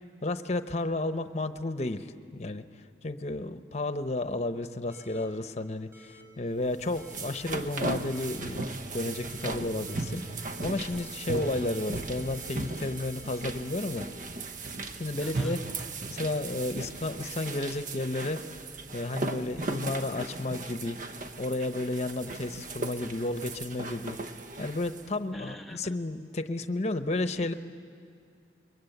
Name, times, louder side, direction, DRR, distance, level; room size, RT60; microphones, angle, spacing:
voice 1, 0.2-2.6 3.0-14.1 14.9-15.6 16.1-18.4 18.9-21.0 21.4-24.2 24.6-27.5, left 2 dB, 40° left, 10 dB, 0.9 m, -32 dB
sound 1, 4.9-5.3 5.9-6.2 7.0-7.3 8.1-8.4 9.1-9.5 9.9-10.7 10.9-14.6, left 1 dB, 15° right, 4.1 m, -54 dB
sound 2, 6.7-25.1, right 2 dB, 45° right, 1.0 m, -37 dB
voice 2, 15.2-15.6 25.3-26.0 27.4-27.5, left 1 dB, ahead, 6 dB, 0.7 m, -45 dB
28.0 x 22.5 x 8.0 m, 2.3 s
head